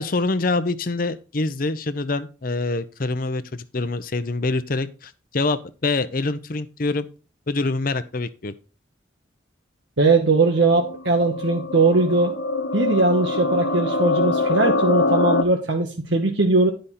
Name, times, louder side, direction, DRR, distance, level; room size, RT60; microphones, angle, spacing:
voice 1, 0.0-7.1 7.5-8.5, left 3 dB, 50° left, 13 dB, 0.7 m, -25 dB
voice 2, 10.0-12.3 12.7-16.7, right 3 dB, 75° right, 2 dB, 1.1 m, -20 dB
sound 1, 10.4-15.4, left 3 dB, 90° left, 1.1 m, -24 dB
11.5 x 5.2 x 4.2 m, 0.34 s
head